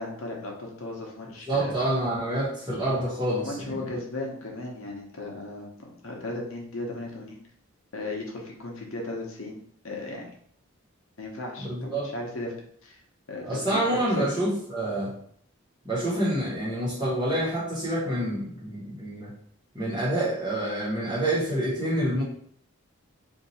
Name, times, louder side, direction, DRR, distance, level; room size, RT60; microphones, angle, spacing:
voice 1, 0.0-1.7 3.4-7.4 7.9-9.6 9.8-10.3 11.2-12.5 12.8-13.0 13.3-14.3, left 2 dB, 80° left, 0 dB, 0.9 m, -36 dB
voice 2, 1.5-3.8 11.6-12.1 13.4-15.1 15.8-19.3 19.7-22.2, right 1 dB, 20° right, -7 dB, 1.3 m, -27 dB
2.8 x 2.8 x 4.1 m, 0.64 s
head